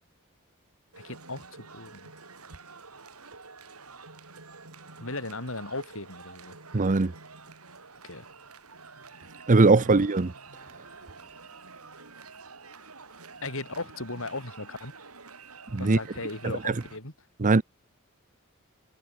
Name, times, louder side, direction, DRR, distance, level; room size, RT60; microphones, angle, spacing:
sound 1, 0.9-17.0, right 4 dB, 85° right, 6.2 m, -48 dB
voice 1, 1.0-2.1 5.0-6.5 8.0-8.3 9.7-10.0 13.4-14.9 15.8-17.1, left 2 dB, 65° left, 6.7 m, -37 dB
voice 2, 6.7-7.1 9.5-10.3 15.7-16.0 16.4-16.7 17.4-17.6, right 3 dB, 35° right, 0.7 m, -20 dB
head